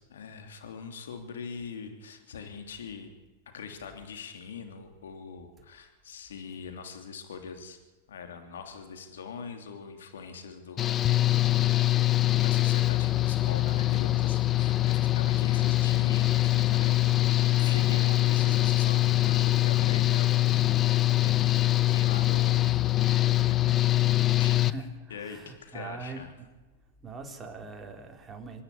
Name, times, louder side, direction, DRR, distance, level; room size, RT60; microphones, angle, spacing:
voice 1, 0.0-3.1 3.5-7.8 8.1-10.9 12.4-23.7 24.4-24.6 25.1-26.3, left 6 dB, 85° left, 5 dB, 3.1 m, -42 dB
Engine / Mechanical fan, 10.8-24.7, left 16 dB, 30° left, 0.8 m, -24 dB
voice 2, 24.5-26.3 27.0-28.6, right 4 dB, 15° right, 3 dB, 3.6 m, -42 dB
26.0 x 10.0 x 9.7 m, 1.2 s
hypercardioid pair, 120°, 0 cm